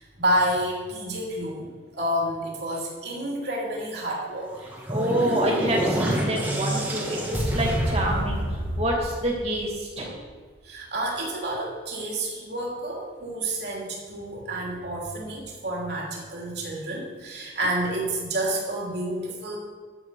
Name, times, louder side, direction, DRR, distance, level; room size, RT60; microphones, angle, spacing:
voice 1, 0.0-4.6 10.6-19.6, right 1 dB, 60° right, -2 dB, 3.0 m, -29 dB
sound 1, 4.5-9.8, right 1 dB, 10° right, 1.8 m, -27 dB
voice 2, 4.9-10.1, right 1 dB, 35° right, -2 dB, 2.7 m, -27 dB
13.5 x 8.0 x 5.1 m, 1.5 s
head